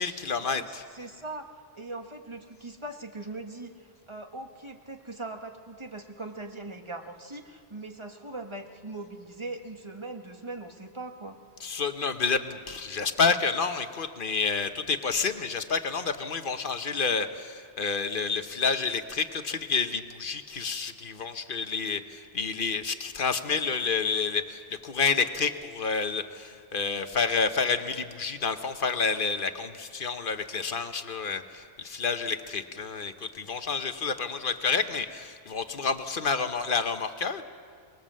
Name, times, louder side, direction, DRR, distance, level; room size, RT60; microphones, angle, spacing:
voice 1, 0.0-0.8 11.6-37.4, left 5 dB, 50° left, 9 dB, 1.1 m, -29 dB
voice 2, 0.5-1.4 1.7-11.4, right 2 dB, 25° right, 5 dB, 1.4 m, -40 dB
24.0 x 20.5 x 7.5 m, 2.1 s
omnidirectional pair, 1.1 m